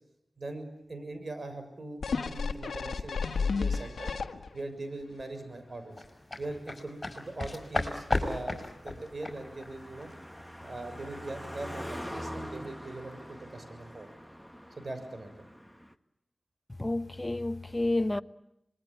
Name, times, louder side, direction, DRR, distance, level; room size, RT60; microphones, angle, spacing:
voice 1, 0.4-4.1 4.5-6.0 6.4-10.1 10.6-14.1 14.8-15.3, right 2 dB, 55° right, 6.7 m, -41 dB
sound 1, 2.0-4.7 5.2-5.3, left 5 dB, 85° left, 1.4 m, -32 dB
Car passing by, 4.8-15.9, equal, ahead, 1.7 m, -45 dB
sound 2, 6.0-11.2 11.5-11.7, left 2 dB, 40° left, 5.7 m, -34 dB
voice 2, 16.8-18.2, left 2 dB, 20° left, 1.1 m, -30 dB
26.0 x 22.0 x 8.9 m
cardioid pair, 40°, 0 cm